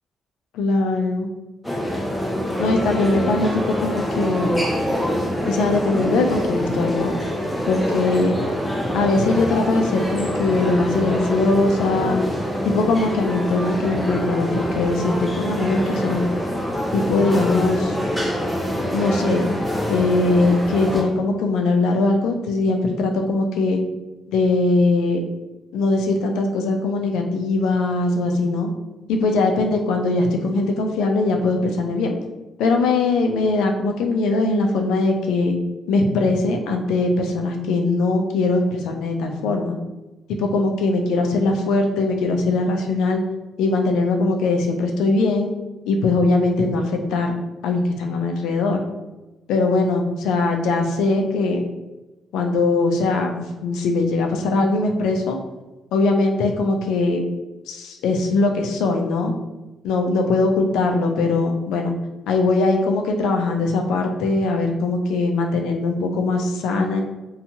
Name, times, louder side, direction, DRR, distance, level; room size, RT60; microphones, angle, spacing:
voice 1, 0.5-1.3 2.6-4.5 5.4-7.1 7.7-8.4 8.9-12.2 12.6-16.3 16.9-17.9 18.9-19.4 19.9-23.8 24.3-25.2 25.7-28.7 29.1-32.1 32.6-35.5 35.9-39.8 40.3-43.2 43.6-45.5 45.9-47.3 47.6-48.8 49.5-51.6 52.3-55.4 55.9-57.2 57.7-59.3 59.8-62.0 62.3-67.0, left 3 dB, 90° left, 3 dB, 0.4 m, -21 dB
sound 1, 1.6-21.0, equal, 5° left, 0.6 m, -25 dB
2.6 x 2.3 x 2.8 m, 1.1 s
cardioid pair, 90°, 0 cm